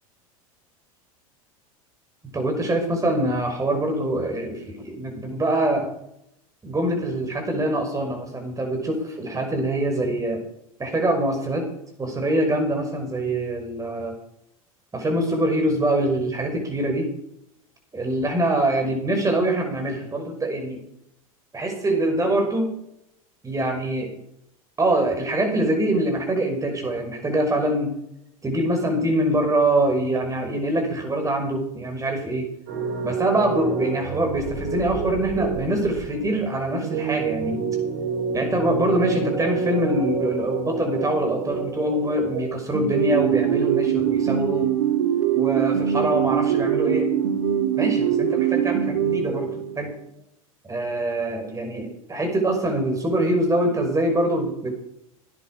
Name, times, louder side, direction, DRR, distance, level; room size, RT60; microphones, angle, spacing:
voice 1, 2.2-5.9 6.6-10.4 10.8-11.7 12.0-14.1 14.9-17.1 17.9-20.8 21.5-22.7 23.4-24.1 24.8-27.9 28.4-32.5 33.0-37.6 38.3-44.7 45.3-47.1 47.7-50.0 50.6-54.7, right 1 dB, 20° right, 3 dB, 5.9 m, -24 dB
sound 1, 32.7-42.4, right 5 dB, 50° right, 4.5 m, -29 dB
sound 2, 42.7-49.9, right 10 dB, 70° right, 1.6 m, -22 dB
17.5 x 10.5 x 5.0 m, 0.75 s
hypercardioid pair, 85°, 18 cm